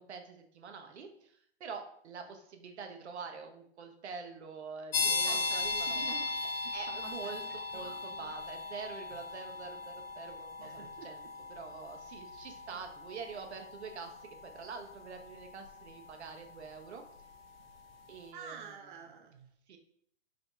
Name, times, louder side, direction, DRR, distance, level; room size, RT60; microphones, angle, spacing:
voice 1, 0.0-6.3 6.7-17.0 18.1-18.8 19.7-19.8, right 5 dB, 80° right, 5 dB, 0.9 m, -46 dB
sound 1, 4.9-17.4, left 3 dB, 60° left, 0.7 m, -38 dB
voice 2, 5.0-6.3 6.6-7.4 7.7-8.3 10.6-11.1 18.3-19.5, right 6 dB, 50° right, 4 dB, 0.5 m, -49 dB
4.2 x 2.8 x 3.9 m, 0.66 s
hypercardioid pair, 160°, 33 cm